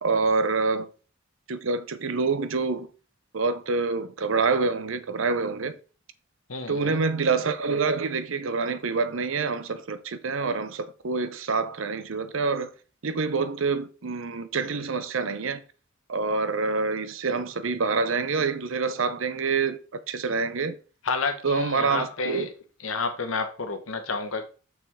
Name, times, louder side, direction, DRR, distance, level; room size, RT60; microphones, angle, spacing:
voice 1, 0.0-0.9 1.5-2.9 3.3-5.8 6.7-12.7 13.0-15.6 16.1-20.8 21.4-22.5, right 4 dB, 75° right, 0.7 m, -26 dB
voice 2, 6.5-7.0 21.0-22.5 22.8-24.5, left 4 dB, 90° left, 1.3 m, -30 dB
6.4 x 5.8 x 3.6 m
head